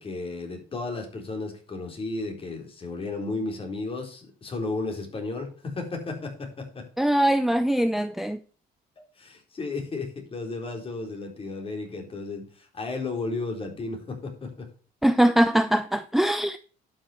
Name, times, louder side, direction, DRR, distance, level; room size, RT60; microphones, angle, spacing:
voice 1, 0.0-6.9 9.0-14.7, left 3 dB, 35° left, 4.0 m, -34 dB
voice 2, 7.0-8.4 15.0-16.6, right 1 dB, ahead, 0.6 m, -22 dB
11.5 x 6.5 x 4.4 m
cardioid pair, 110°, 17 cm